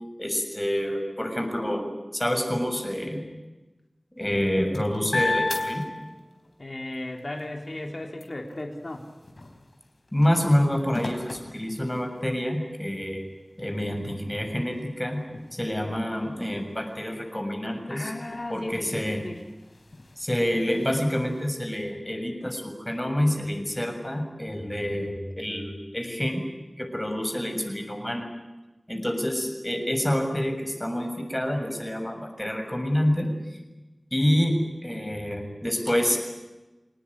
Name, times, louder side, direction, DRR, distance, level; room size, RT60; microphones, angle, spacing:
voice 1, 0.2-1.9 2.1-3.2 4.2-5.8 10.1-13.3 13.6-15.2 15.5-18.1 18.5-19.3 20.2-26.4 26.8-28.3 28.9-33.3 34.1-36.2, equal, 15° left, 4 dB, 7.0 m, -27 dB
sound 1, 4.2-6.6 7.0-12.4 13.1-13.2 13.5-21.5, left 2 dB, 80° left, 4.2 m, -37 dB
voice 2, 6.6-9.1 17.9-19.4, left 1 dB, 65° left, 2 dB, 3.7 m, -36 dB
27.0 x 19.5 x 9.9 m, 1.1 s
wide cardioid pair, 50°, 0 cm